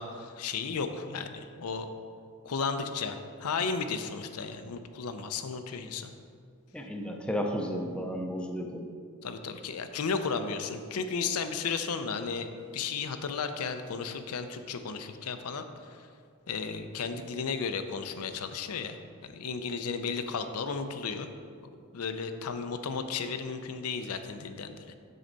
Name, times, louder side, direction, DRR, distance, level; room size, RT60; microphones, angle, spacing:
voice 1, 0.0-1.9 2.4-6.1 9.2-16.1 16.5-21.3 21.6-25.0, left 5 dB, 90° left, 8 dB, 0.5 m, -34 dB
voice 2, 6.7-8.9, equal, 5° left, 2 dB, 0.5 m, -33 dB
7.8 x 6.3 x 4.0 m, 2.2 s
head